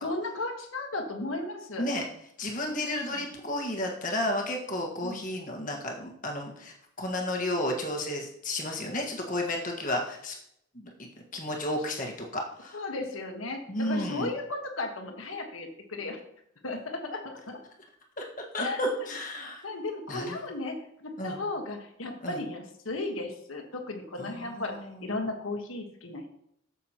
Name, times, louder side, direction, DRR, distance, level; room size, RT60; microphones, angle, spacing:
voice 1, 0.0-1.9 5.0-5.2 12.7-16.2 16.6-17.6 18.6-18.8 19.6-24.7 25.0-26.3, left 2 dB, 80° left, 4 dB, 1.4 m, -35 dB
voice 2, 2.4-10.3 10.7-12.8 13.7-14.3 18.2-19.6 20.1-20.4 21.2-21.4 22.2-22.4 24.2-25.1, left 1 dB, 40° left, 1 dB, 1.6 m, -32 dB
8.9 x 7.2 x 3.0 m, 0.72 s
head